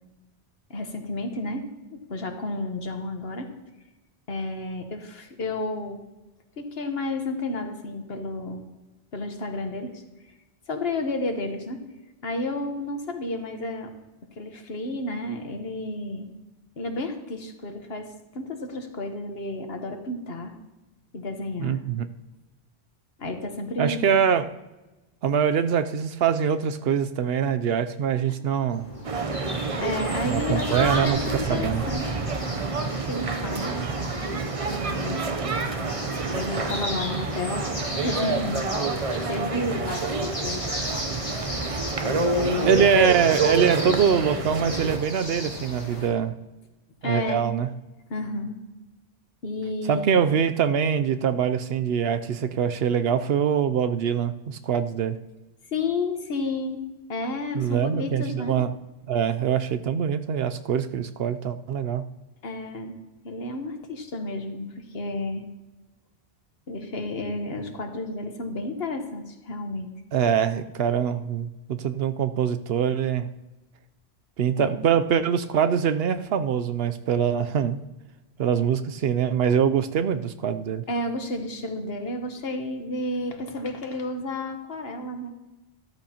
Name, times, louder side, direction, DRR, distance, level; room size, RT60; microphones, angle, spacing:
voice 1, 0.7-3.5 4.3-6.0 6.6-8.6 9.1-10.0 10.7-11.8 12.2-13.9 14.4-16.3 16.8-20.5 21.1-21.8 23.2-24.1 29.8-32.1 33.0-33.8 34.3-34.4 34.7-35.2 36.3-37.7 38.0-38.7 39.2-40.7 42.3-42.8 47.0-47.4 48.1-48.5 49.4-50.2 55.7-56.8 57.1-58.5 62.4-62.9 63.2-64.6 64.9-65.4 66.7-69.9 74.6-74.7 80.9-85.3, left 2 dB, 65° left, 5 dB, 1.4 m, -31 dB
voice 2, 21.6-22.1 23.8-24.5 25.2-28.9 30.3-31.8 41.7-41.8 42.7-46.4 47.0-47.7 49.9-55.2 57.5-58.7 59.1-62.0 70.1-73.3 74.4-77.8 78.4-80.8, right 7 dB, 70° right, 11 dB, 0.8 m, -24 dB
sound 1, 28.7-46.1, equal, 45° left, 2.9 m, -36 dB
sound 2, 29.0-45.0, right 3 dB, 35° right, 0.7 m, -28 dB
13.0 x 13.0 x 2.9 m, 1.1 s
omnidirectional pair, 1.1 m